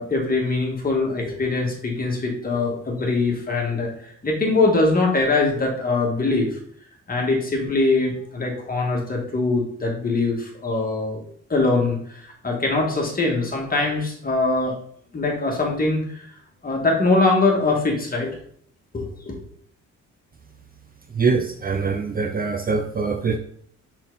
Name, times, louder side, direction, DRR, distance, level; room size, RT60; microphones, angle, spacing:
voice 1, 0.0-3.9 4.2-6.6 7.1-11.2 11.5-14.7 15.1-16.3 16.6-18.3 18.9-19.4, left 3 dB, 30° left, 0 dB, 2.0 m, -22 dB
voice 2, 21.1-23.4, right 4 dB, 30° right, 5 dB, 0.6 m, -23 dB
6.1 x 4.1 x 4.0 m, 0.62 s
cardioid pair, 90°, 30 cm